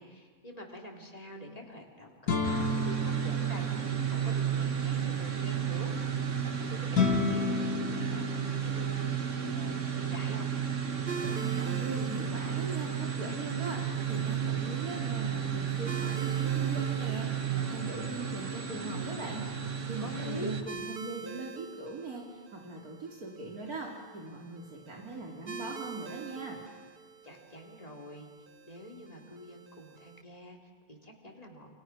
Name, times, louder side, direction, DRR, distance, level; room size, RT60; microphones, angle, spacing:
voice 1, 0.0-10.5 20.0-20.5 27.2-28.3 28.6-31.7, left 1 dB, 25° left, 0 dB, 3.7 m, -46 dB
sound 1, 2.3-4.3 6.9-9.1, left 4 dB, 80° left, 2.7 m, -31 dB
sound 2, 2.4-20.6, right 8 dB, 55° right, 2.0 m, -32 dB
sound 3, 11.1-30.2, right 5 dB, 40° right, 1.3 m, -47 dB
voice 2, 11.2-19.4 19.9-26.6, right 3 dB, 80° right, -1 dB, 3.4 m, -40 dB
29.5 x 28.0 x 6.2 m, 1.5 s
omnidirectional pair, 1.6 m